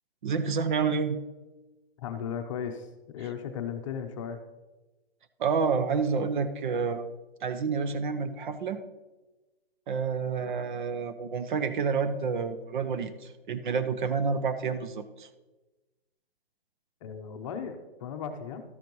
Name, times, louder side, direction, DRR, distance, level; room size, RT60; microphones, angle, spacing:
voice 1, 0.2-1.2 5.4-7.1 7.4-8.8 9.9-15.3, right 5 dB, 50° right, 11 dB, 0.8 m, -29 dB
voice 2, 2.0-4.4 17.0-18.6, left 7 dB, 30° left, 6 dB, 0.8 m, -36 dB
12.5 x 9.1 x 3.1 m, 1.1 s
hypercardioid pair, 150°, 30 cm